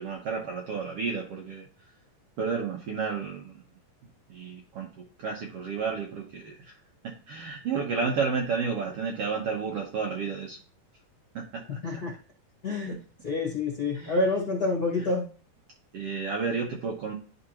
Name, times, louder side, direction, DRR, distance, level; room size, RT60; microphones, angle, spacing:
voice 1, 0.0-1.6 2.4-3.6 4.3-6.7 7.3-10.6 11.3-11.6 12.7-13.0 13.9-14.2 15.9-17.1, right 5 dB, 65° right, 0 dB, 1.5 m, -31 dB
voice 2, 12.6-12.9 13.2-15.2, left 3 dB, 40° left, -2 dB, 1.5 m, -27 dB
11.5 x 3.8 x 2.9 m, 0.39 s
omnidirectional pair, 3.8 m